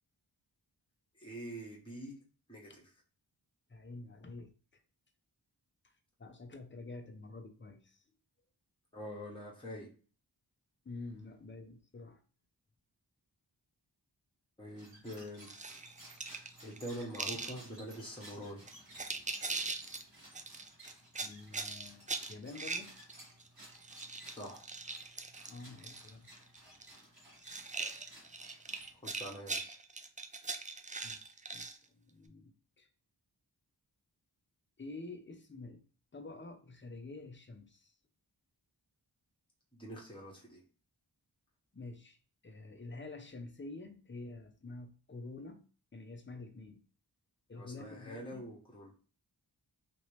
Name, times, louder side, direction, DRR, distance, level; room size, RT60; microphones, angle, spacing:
voice 1, 1.1-2.2 2.5-2.8 8.9-9.9 14.6-15.5 16.6-18.6 24.3-24.7 28.9-29.8 39.7-40.6 47.5-48.9, equal, 10° left, -4 dB, 1.1 m, -45 dB
voice 2, 3.7-4.5 6.2-8.0 10.8-12.2 21.2-22.9 25.5-26.3 31.0-31.2 31.5-32.9 34.8-35.8 36.1-37.9 41.7-42.2 42.4-46.8 47.5-48.4, left 3 dB, 25° left, 5 dB, 0.6 m, -48 dB
sound 1, 14.7-29.3, right 1 dB, 55° right, 1.4 m, -57 dB
sound 2, 15.5-17.5 18.2-18.3 18.7-20.0 20.3-23.5 23.7-26.1 26.4-27.0 27.4-31.8, right 3 dB, 20° right, 0.3 m, -41 dB
3.0 x 2.9 x 3.2 m, 0.39 s
wide cardioid pair, 40°, 43 cm